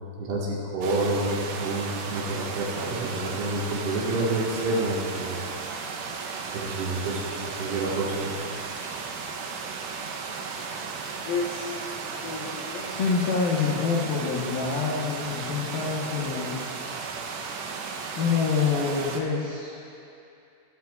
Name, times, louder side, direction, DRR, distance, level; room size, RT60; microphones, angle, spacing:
voice 1, 0.2-5.4 6.5-8.3, right 2 dB, 60° right, -6 dB, 3.2 m, -28 dB
sound 1, 0.8-19.2, right 5 dB, 85° right, 2.6 m, -35 dB
voice 2, 11.2-16.6 18.1-19.7, left 5 dB, 75° left, -6 dB, 2.1 m, -27 dB
21.5 x 12.0 x 2.4 m, 2.7 s
omnidirectional pair, 5.9 m